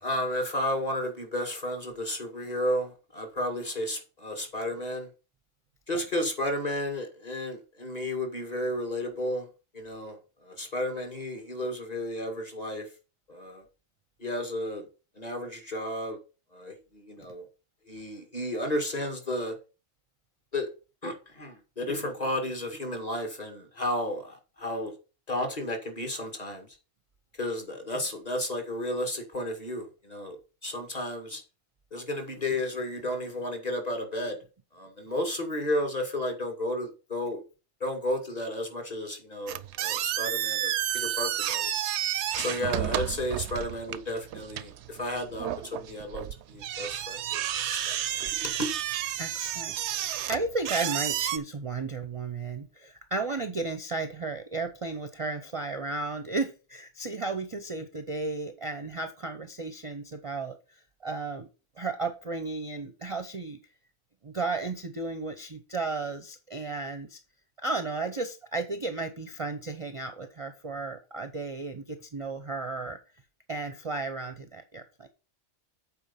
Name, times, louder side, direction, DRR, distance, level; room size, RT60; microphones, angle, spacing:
voice 1, 0.0-5.1 5.9-9.5 9.7-12.9 13.3-13.6 14.2-14.9 15.2-16.2 16.5-17.4 17.9-19.5 20.5-20.7 21.0-24.9 25.3-26.7 27.4-30.4 30.6-31.4 31.9-34.4 34.7-37.4 37.8-41.8 42.4-48.0 48.3-48.7, left 1 dB, 35° left, 2.2 m, -32 dB
sound 1, 39.5-51.4, right 11 dB, 70° right, 0.8 m, -31 dB
voice 2, 49.2-61.5 61.8-63.6 64.2-67.2 67.6-73.0 73.5-75.1, right 3 dB, 35° right, 0.7 m, -34 dB
8.4 x 4.6 x 5.7 m
omnidirectional pair, 1.2 m